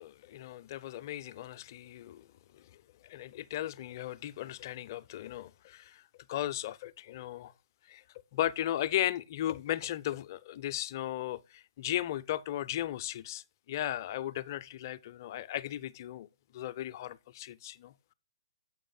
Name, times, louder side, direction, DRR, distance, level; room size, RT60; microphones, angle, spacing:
voice 1, 0.0-2.3 2.5-6.0 6.3-7.5 7.9-8.0 8.3-16.3 16.5-18.1, left 12 dB, 40° left, 0.4 m, -36 dB
7.6 x 5.0 x 3.8 m
figure-of-eight pair, 125°, 3 cm